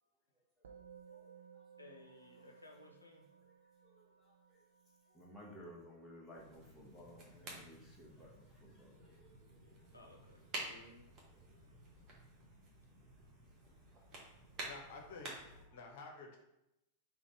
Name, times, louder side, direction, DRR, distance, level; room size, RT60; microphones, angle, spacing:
Musical instrument, 0.6-10.2, right 7 dB, 65° right, 0.5 m, -62 dB
voice 1, 1.8-3.2 9.9-11.1, left 2 dB, 80° left, 1 dB, 0.5 m, -58 dB
voice 2, 3.8-4.6 5.1-8.9 14.5-14.7, equal, 10° left, -4 dB, 1.3 m, -56 dB
sound 1, 6.3-15.6, right 1 dB, 30° right, 1.2 m, -51 dB
voice 3, 14.7-15.4 15.7-16.4, left 3 dB, 55° left, 1 dB, 0.8 m, -50 dB
3.9 x 2.9 x 4.6 m, 0.86 s
figure-of-eight pair, 90°, 0 cm